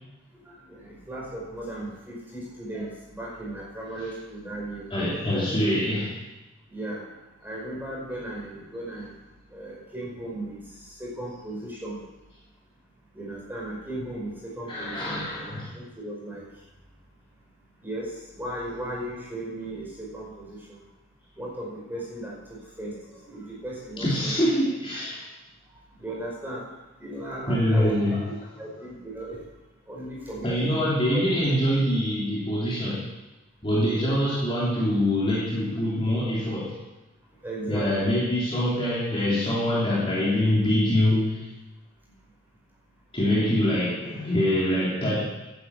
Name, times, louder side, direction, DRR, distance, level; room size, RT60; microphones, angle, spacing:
voice 1, 0.3-4.9 6.7-7.0 7.4-9.1 9.5-12.0 13.1-16.4 17.8-20.8 21.4-24.5 26.0-26.6 27.0-28.0 28.6-29.5 29.9-30.8 31.1-31.2 34.0-34.4 37.4-38.2, right 1 dB, 10° right, -4 dB, 5.1 m, -36 dB
voice 2, 4.9-6.2 14.7-15.7 24.0-25.2 27.5-28.2 30.4-33.1 33.6-36.8 37.7-41.5 43.1-45.2, left 1 dB, 25° left, -7 dB, 3.1 m, -24 dB
11.0 x 11.0 x 8.2 m, 1.0 s
head